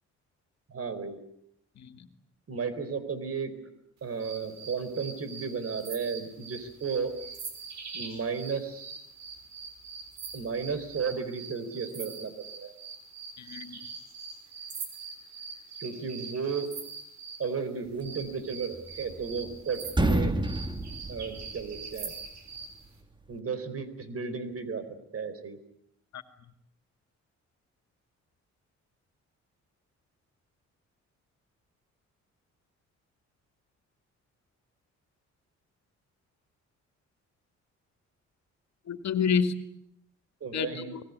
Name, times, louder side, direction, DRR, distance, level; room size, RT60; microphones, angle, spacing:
voice 1, 0.7-1.2 2.5-3.5 4.0-7.1 7.9-9.1 10.3-12.7 15.8-16.7 17.4-20.3 21.1-22.1 23.3-25.6 40.4-40.9, right 5 dB, 55° right, 11 dB, 4.3 m, -34 dB
voice 2, 1.8-2.1 13.4-13.8 26.1-26.2 38.9-39.6 40.5-41.0, left 6 dB, 70° left, 9 dB, 2.3 m, -29 dB
sound 1, 4.2-17.5 18.0-22.8, right 5 dB, 70° right, 5.3 m, -43 dB
sound 2, 18.7-19.6 19.9-22.0, right 1 dB, 15° right, 1.8 m, -29 dB
25.0 x 19.0 x 9.6 m, 0.74 s
cardioid pair, 100°, 29 cm